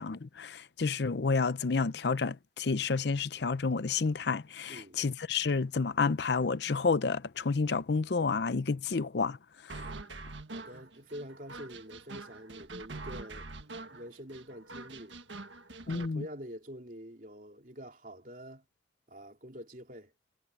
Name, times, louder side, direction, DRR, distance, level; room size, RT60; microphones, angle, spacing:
voice 1, 0.0-9.4 15.9-16.2, left 4 dB, 65° left, 0.6 m, -30 dB
voice 2, 4.7-5.0 9.7-10.0 10.5-13.5 13.9-15.2 15.9-18.6 19.1-20.1, equal, 45° right, 3.3 m, -46 dB
sound 1, 9.7-16.1, right 3 dB, 80° right, 1.7 m, -45 dB
head